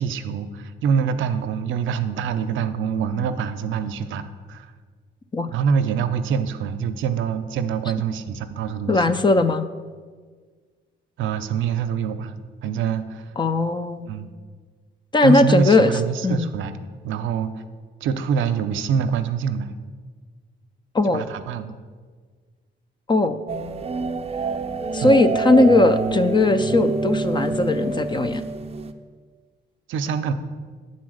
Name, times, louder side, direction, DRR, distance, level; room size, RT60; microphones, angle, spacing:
voice 1, 0.0-4.7 5.5-9.2 11.2-12.3 12.6-13.3 14.0-14.3 15.2-16.8 17.0-17.6 18.0-19.7 21.1-21.8 25.0-25.2 29.9-30.3, right 6 dB, 80° right, 10 dB, 0.5 m, -25 dB
voice 2, 8.9-9.7 13.4-14.1 15.1-15.9 16.2-16.5 20.9-21.3 23.1-23.4 24.9-28.4, left 2 dB, 25° left, 11 dB, 0.4 m, -18 dB
sound 1, 23.5-28.9, right 4 dB, 30° right, 0.5 m, -26 dB
8.5 x 4.2 x 6.3 m, 1.5 s
cardioid pair, 90°, 20 cm